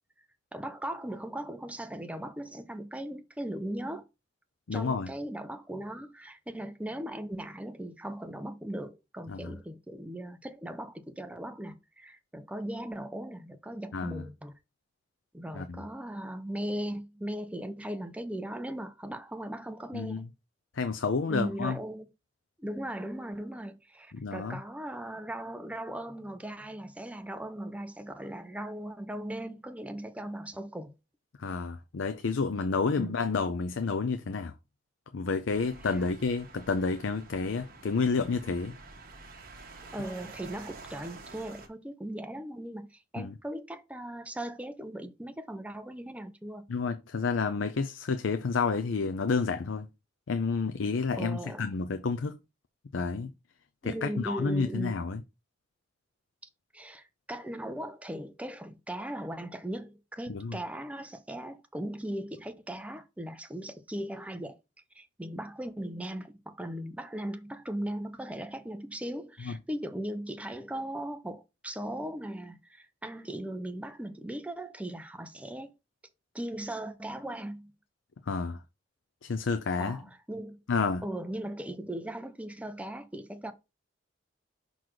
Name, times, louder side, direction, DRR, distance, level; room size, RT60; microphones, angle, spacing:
voice 1, 0.5-4.0 4.7-14.5 15.3-20.2 21.3-22.1 22.6-30.9 33.0-33.2 39.9-46.7 51.1-51.7 53.8-55.1 56.7-64.6 64.9-75.7 76.3-77.7 79.8-80.6 81.0-83.5, right 1 dB, 5° right, 0.7 m, -38 dB
voice 2, 4.7-5.1 9.3-9.5 13.9-14.2 15.5-15.8 19.9-20.3 20.7-21.8 24.1-24.6 31.4-34.5 35.1-38.8 43.2-43.3 46.7-49.9 50.3-52.4 52.9-53.3 53.8-55.2 60.3-60.6 69.4-69.6 78.3-78.6 79.2-80.0 80.7-81.0, left 4 dB, 85° left, 0.5 m, -30 dB
sound 1, 35.5-41.7, right 3 dB, 55° right, 1.4 m, -49 dB
6.1 x 4.0 x 4.7 m
head